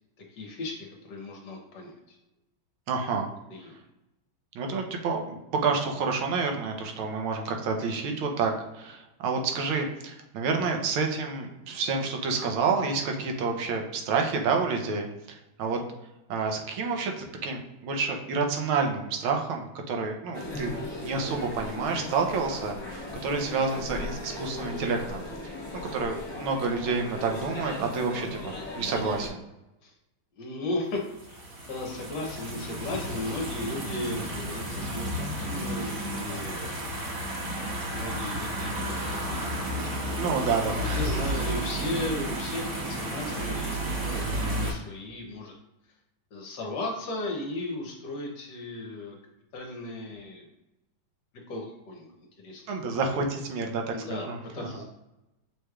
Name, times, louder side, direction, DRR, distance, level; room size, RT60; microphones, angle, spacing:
voice 1, 0.2-2.2 3.5-3.8 29.8-29.9 30.3-37.1 37.9-39.5 40.8-45.5 46.3-49.2 49.5-50.5 51.5-52.6 53.9-54.8, left 2 dB, 65° left, 0 dB, 1.2 m, -36 dB
voice 2, 2.9-3.3 4.5-5.4 5.6-15.8 16.3-20.7 21.0-25.2 25.9-29.4 40.2-41.1 52.7-54.7, right 4 dB, 80° right, 2 dB, 1.5 m, -29 dB
sound 1, 20.3-29.3, left 1 dB, 30° left, 1.1 m, -37 dB
sound 2, 31.1-44.7, right 1 dB, 50° right, 1.3 m, -32 dB
6.4 x 3.1 x 2.3 m, 0.95 s
omnidirectional pair, 2.3 m